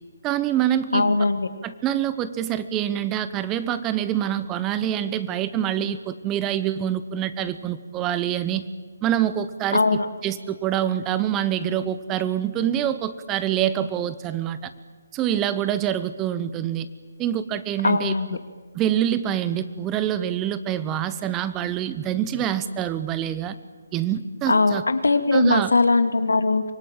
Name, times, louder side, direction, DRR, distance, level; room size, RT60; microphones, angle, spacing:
voice 1, 0.2-1.1 1.6-8.6 9.0-14.7 15.1-16.9 17.2-18.2 18.7-23.6 23.9-24.8 25.3-25.7, right 10 dB, 15° right, 14 dB, 0.9 m, -25 dB
voice 2, 0.9-1.5 9.7-10.1 17.8-18.3 24.5-26.6, left 3 dB, 85° left, 9 dB, 2.2 m, -20 dB
25.0 x 18.0 x 9.0 m, 1.4 s
hypercardioid pair, 160°, 0 cm